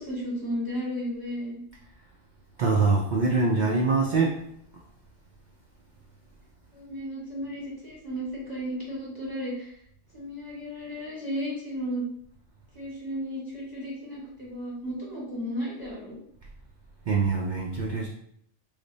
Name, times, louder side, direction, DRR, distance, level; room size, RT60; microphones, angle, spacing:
voice 1, 0.0-1.6 6.7-9.7 10.1-12.1 12.7-16.2, equal, 20° left, -5 dB, 1.2 m, -34 dB
voice 2, 2.6-4.4 17.1-18.1, right 3 dB, 65° right, -1 dB, 0.4 m, -24 dB
3.3 x 2.1 x 3.9 m, 0.71 s
omnidirectional pair, 1.3 m